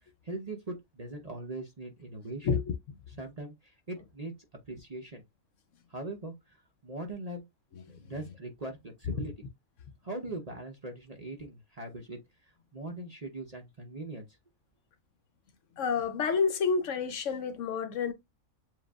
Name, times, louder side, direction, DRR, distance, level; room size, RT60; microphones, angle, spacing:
voice 1, 0.2-2.6 3.1-4.3 4.7-5.2 5.9-6.6 6.8-7.5 7.9-9.3 10.0-14.3, right 2 dB, 35° right, 0.7 m, -41 dB
voice 2, 2.4-2.7 9.2-9.3 15.8-18.1, left 5 dB, 65° left, 0.9 m, -29 dB
7.5 x 2.5 x 2.3 m
omnidirectional pair, 1.5 m